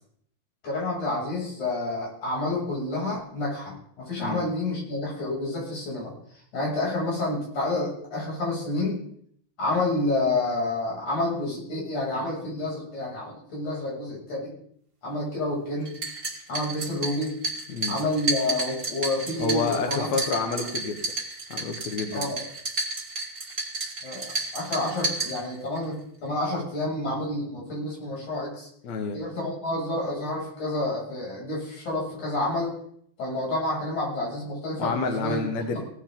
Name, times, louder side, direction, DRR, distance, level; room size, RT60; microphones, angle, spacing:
voice 1, 0.6-6.1 6.5-9.0 9.6-14.6 15.0-15.9 16.5-17.4 17.9-20.1 22.1-22.4 24.0-28.7 29.1-32.7 33.2-35.5 35.7-35.8, left 2 dB, 45° left, -5 dB, 8.5 m, -29 dB
sound 1, 15.9-25.8, right 3 dB, 20° right, 1.6 m, -32 dB
voice 2, 19.4-21.0 21.5-22.3 28.8-29.2 34.8-35.8, left 4 dB, 60° left, 4 dB, 1.9 m, -29 dB
18.0 x 14.0 x 3.9 m, 0.66 s
omnidirectional pair, 5.0 m